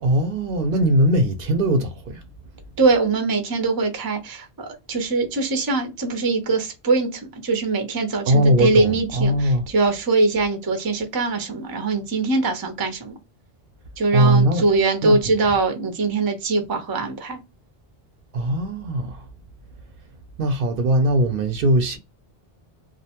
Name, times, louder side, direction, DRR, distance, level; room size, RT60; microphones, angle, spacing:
voice 1, 0.0-2.2 8.3-9.7 14.1-14.6 15.0-15.2 18.3-19.2 20.4-22.0, right 1 dB, 65° right, 0.7 m, -20 dB
voice 2, 2.8-13.1 14.0-17.4, right 3 dB, 30° right, 0.5 m, -22 dB
2.5 x 2.1 x 2.8 m
omnidirectional pair, 1.0 m